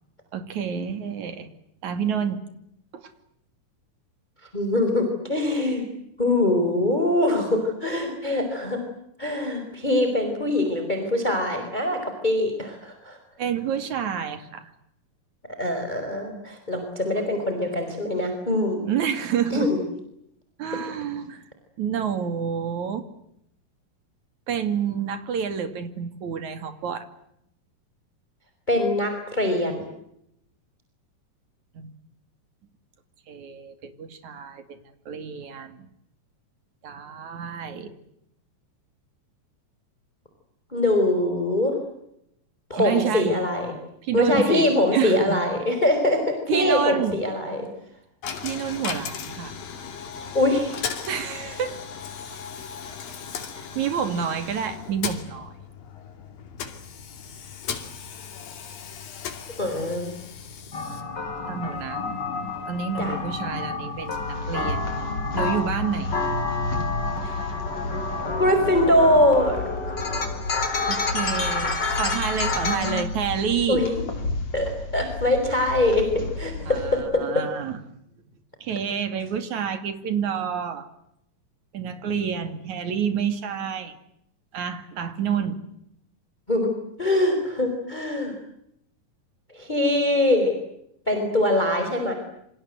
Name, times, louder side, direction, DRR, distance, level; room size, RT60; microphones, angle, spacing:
voice 1, 0.3-1.5 1.8-2.4 2.9-3.1 13.4-14.7 18.9-19.7 20.6-21.4 21.8-23.1 24.5-27.1 31.7-31.9 33.3-35.9 36.8-38.0 42.7-43.3 44.0-45.4 46.5-47.2 48.4-49.6 51.1-51.8 53.5-55.6 61.5-62.0 62.7-64.9 65.3-66.2 70.9-73.9 76.7-78.0 78.6-80.9 81.7-84.0 84.5-85.6, right 7 dB, 60° right, 9 dB, 3.7 m, -28 dB
voice 2, 4.5-5.8 6.2-8.8 9.2-13.2 15.6-18.8 19.5-19.8 28.7-29.9 40.7-41.8 42.7-43.7 44.1-47.6 50.3-51.0 59.6-60.1 63.0-63.2 67.2-67.3 68.4-69.6 73.7-73.9 74.5-77.2 86.5-86.7 87.0-88.3 89.5-90.5 91.1-92.1, left 1 dB, 10° left, 5 dB, 4.7 m, -23 dB
Coin (dropping), 48.2-65.2, left 7 dB, 90° left, 4.4 m, -38 dB
sound 1, 60.7-73.0, left 3 dB, 30° left, 4.3 m, -29 dB
sound 2, 63.9-77.0, left 2 dB, 50° left, 5.9 m, -33 dB
28.0 x 26.0 x 8.0 m, 0.77 s
omnidirectional pair, 3.9 m